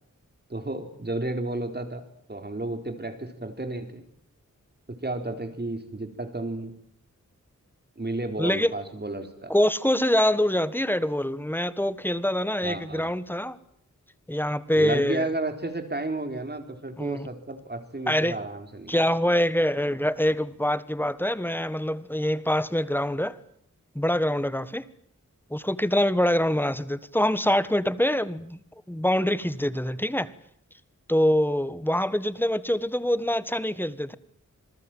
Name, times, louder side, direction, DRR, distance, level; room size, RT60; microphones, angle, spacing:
voice 1, 0.5-2.0 2.3-4.0 4.9-6.7 8.0-9.5 12.6-13.1 14.7-18.9, right 2 dB, 35° right, 4.2 m, -32 dB
voice 2, 8.4-8.7 9.5-13.6 14.3-15.3 17.0-17.3 18.1-18.3 18.9-23.4 23.9-24.8 25.5-28.6 28.9-30.3 31.1-34.2, left 1 dB, 5° left, 1.4 m, -25 dB
28.0 x 21.0 x 9.2 m
wide cardioid pair, 90°, 31 cm